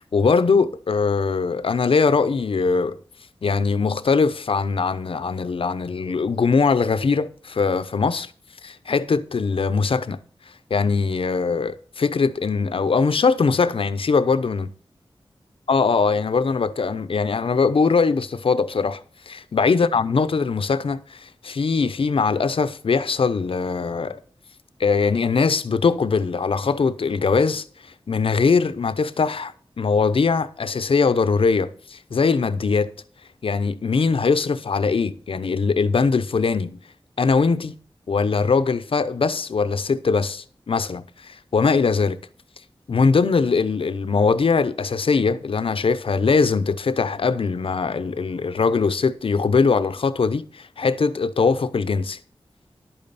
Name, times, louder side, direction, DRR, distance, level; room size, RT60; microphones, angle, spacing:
voice 1, 0.0-3.0 3.4-8.3 8.6-10.2 10.7-14.7 15.7-19.0 19.3-24.2 24.8-27.6 28.1-32.9 33.4-36.8 37.2-37.8 38.1-42.2 42.9-52.2, left 4 dB, 75° left, 0.8 m, -21 dB
11.5 x 8.8 x 4.2 m
wide cardioid pair, 105°, 9 cm